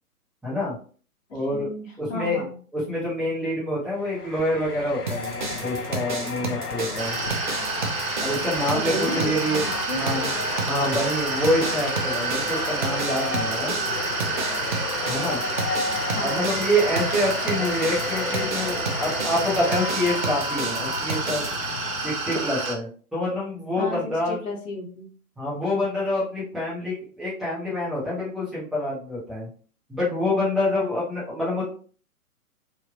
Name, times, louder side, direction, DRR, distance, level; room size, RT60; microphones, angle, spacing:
voice 1, 0.4-0.7 1.3-1.7 2.0-2.5 2.7-7.2 8.2-9.6 10.0-10.3 10.7-13.7 15.1-15.4 16.2-21.4 22.0-24.4 25.4-29.5 29.9-31.6, left 1 dB, ahead, -9 dB, 0.8 m, -26 dB
voice 2, 1.5-2.5 8.7-10.1 16.1-16.4 23.8-24.0 24.3-25.1, left 2 dB, 55° left, -1 dB, 1.3 m, -33 dB
sound 1, 3.9-22.4, left 4 dB, 85° left, 0.6 m, -32 dB
sound 2, 5.1-21.6, right 3 dB, 35° right, 0.4 m, -32 dB
sound 3, 7.0-22.7, right 4 dB, 65° right, 0.9 m, -30 dB
3.2 x 2.7 x 2.3 m, 0.42 s
figure-of-eight pair, 125°, 44 cm